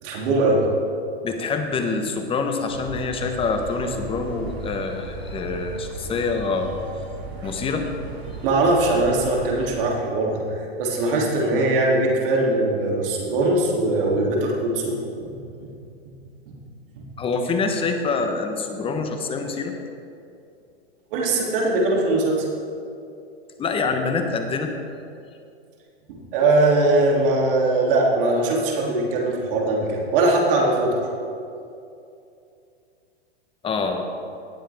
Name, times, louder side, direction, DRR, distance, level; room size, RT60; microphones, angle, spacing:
voice 1, 0.0-0.6 7.4-7.5 8.4-15.3 21.1-22.4 26.3-31.0, right 2 dB, 55° right, -2 dB, 2.9 m, -21 dB
voice 2, 1.2-6.7 7.4-7.9 17.2-19.7 23.6-24.7 33.6-34.1, left 4 dB, 15° left, 6 dB, 1.0 m, -25 dB
sound 1, 2.7-9.7, right 3 dB, 75° right, 2.4 m, -36 dB
18.5 x 7.6 x 3.5 m, 2.6 s
hypercardioid pair, 125°, 32 cm